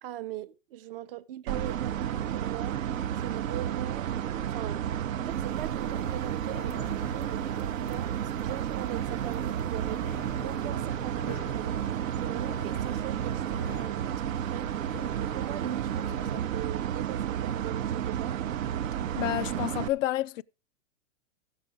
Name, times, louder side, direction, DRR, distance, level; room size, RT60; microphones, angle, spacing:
voice 1, 0.0-2.8 3.2-4.1 4.5-4.9 5.2-8.1 8.4-10.1 10.4-11.9 12.2-14.7 15.2-18.4, right 13 dB, 45° right, 0.6 m, -40 dB
sound 1, 1.5-19.9, right 10 dB, 85° right, 0.7 m, -31 dB
sound 2, 5.3-10.8, right 8 dB, 25° right, 0.9 m, -50 dB
sound 3, 5.8-16.4, left 6 dB, 20° left, 0.4 m, -47 dB
voice 2, 19.2-20.4, left 14 dB, 75° left, 0.5 m, -29 dB
16.0 x 6.7 x 3.5 m
supercardioid pair, 155°, 38 cm